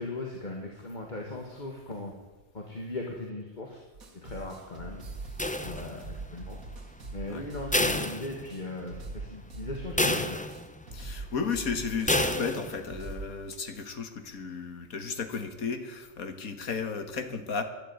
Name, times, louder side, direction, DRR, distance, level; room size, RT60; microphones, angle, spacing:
voice 1, 0.0-2.1 2.5-3.8 4.1-5.0 5.6-6.6 7.1-10.4, left 2 dB, 30° left, 1 dB, 1.9 m, -38 dB
sound 1, 3.9-8.2 8.5-8.6 8.9-10.2 10.5-10.6 10.9-12.2 12.5-12.6 12.9-13.3, right 3 dB, 70° right, 2.4 m, -42 dB
sound 2, 5.4-6.2 7.7-8.9 9.2-9.3 10.0-10.9 12.1-12.9, left 1 dB, 10° left, 0.4 m, -29 dB
voice 2, 10.9-17.6, left 5 dB, 70° left, 8 dB, 2.0 m, -34 dB
12.0 x 11.5 x 9.5 m, 1.2 s
omnidirectional pair, 1.6 m